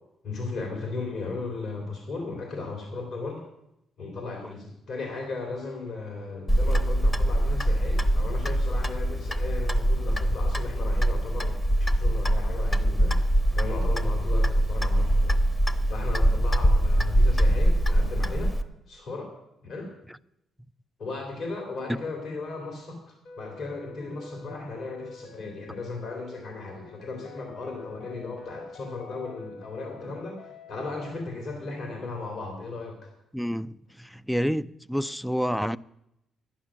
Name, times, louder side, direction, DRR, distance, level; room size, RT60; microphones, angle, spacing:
voice 1, 0.2-3.4 4.0-13.2 13.5-15.3 15.9-18.6 18.9-19.3 19.6-19.9 21.0-33.1, left 3 dB, 65° left, 3.0 m, -36 dB
Clock, 6.5-18.6, equal, 20° left, 1.0 m, -23 dB
sound 1, 23.2-31.2, left 3 dB, 85° left, 1.5 m, -47 dB
voice 2, 33.3-35.8, equal, ahead, 0.4 m, -29 dB
11.5 x 10.0 x 6.2 m
cardioid pair, 90°, 0 cm